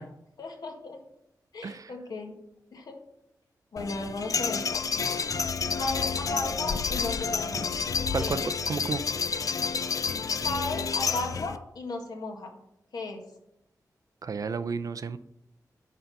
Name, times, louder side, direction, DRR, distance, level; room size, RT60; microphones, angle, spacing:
voice 1, 0.4-1.0 1.5-2.3 2.7-3.0 3.7-4.7 5.7-7.7 8.2-8.4 10.4-12.5 12.9-13.2, left 2 dB, 70° left, 2 dB, 1.8 m, -35 dB
voice 2, 1.6-1.9 8.1-8.4 8.7-9.0 14.2-15.2, right 5 dB, 55° right, 12 dB, 0.5 m, -32 dB
sound 1, 3.8-11.6, left 5 dB, 55° left, 0.5 m, -29 dB
10.5 x 4.0 x 5.4 m, 0.82 s
wide cardioid pair, 105°, 7 cm